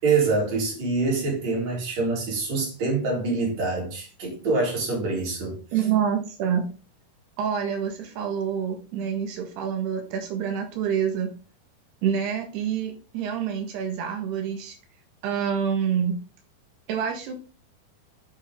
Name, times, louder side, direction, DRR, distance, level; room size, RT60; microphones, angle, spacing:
voice 1, 0.0-5.6, right 3 dB, 45° right, 5.0 m, -25 dB
voice 2, 5.7-6.6 7.4-11.3 12.0-14.8 15.2-16.2 16.9-17.5, right 8 dB, 90° right, 3.7 m, -27 dB
9.1 x 8.5 x 3.8 m
omnidirectional pair, 4.5 m